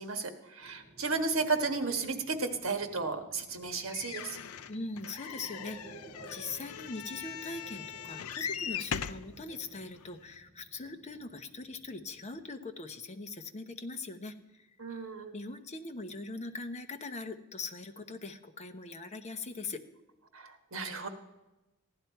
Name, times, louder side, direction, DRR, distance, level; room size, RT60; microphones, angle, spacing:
voice 1, 0.0-4.4 14.8-15.3 20.3-21.1, right 4 dB, 65° right, 6 dB, 1.4 m, -33 dB
sound 1, 0.6-12.5, right 2 dB, 15° left, 2.8 m, -55 dB
sound 2, 3.9-9.3 10.0-10.1 10.3-10.4, left 8 dB, 85° left, 0.5 m, -40 dB
voice 2, 4.7-14.7 15.3-19.8, left 3 dB, 30° left, 6 dB, 0.9 m, -41 dB
15.5 x 11.0 x 4.5 m, 1.0 s
head